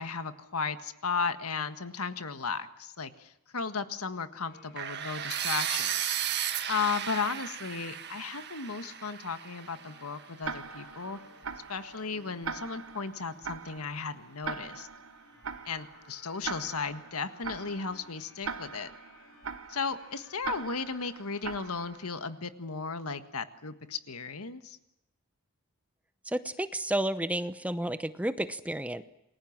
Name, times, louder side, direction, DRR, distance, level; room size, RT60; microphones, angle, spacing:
voice 1, 0.0-6.2 6.7-11.2 11.7-14.9 15.6-18.9 19.7-24.8, left 5 dB, 85° left, 10 dB, 1.7 m, -35 dB
sound 1, 4.4-21.9, left 3 dB, 65° left, 4.3 m, -59 dB
sound 2, 4.8-10.7, right 10 dB, 50° right, 1.6 m, -35 dB
Tick-tock, 10.4-22.3, right 5 dB, 70° right, 1.2 m, -42 dB
voice 2, 26.3-29.0, right 1 dB, 5° right, 12 dB, 0.8 m, -31 dB
28.5 x 21.0 x 7.4 m, 0.89 s
head